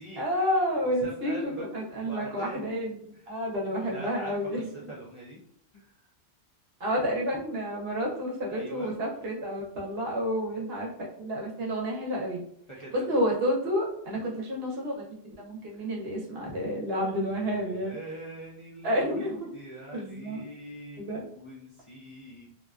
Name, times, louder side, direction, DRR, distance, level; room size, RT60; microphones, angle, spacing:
voice 1, 0.2-4.7 6.8-12.4 12.9-18.0 18.8-19.5 19.9-20.4 21.0-21.2, equal, 65° right, -2 dB, 0.9 m, -30 dB
voice 2, 0.8-1.7 2.0-2.8 3.1-3.4 3.8-5.4 5.7-6.1 8.5-8.9 12.7-13.2 15.7-15.9 16.9-21.0 21.3-22.5, right 1 dB, 35° left, -6 dB, 0.5 m, -43 dB
2.7 x 2.2 x 2.3 m, 0.69 s
omnidirectional pair, 1.1 m